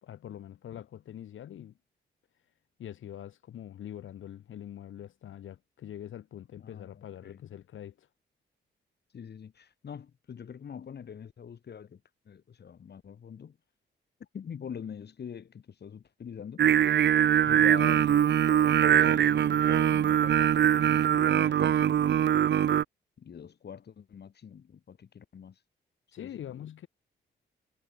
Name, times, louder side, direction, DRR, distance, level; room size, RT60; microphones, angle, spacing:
voice 1, 0.0-1.7 2.8-8.1 26.1-26.9, left 10 dB, 85° left, 3.5 m, -44 dB
voice 2, 6.6-7.4 9.1-12.0 12.2-13.6 14.3-16.7 17.5-18.2 18.8-22.2 23.2-25.6 26.2-26.9, left 7 dB, 55° left, 4.7 m, -44 dB
Singing, 16.6-22.8, right 9 dB, 65° right, 0.9 m, -22 dB
cardioid pair, 110°, 20 cm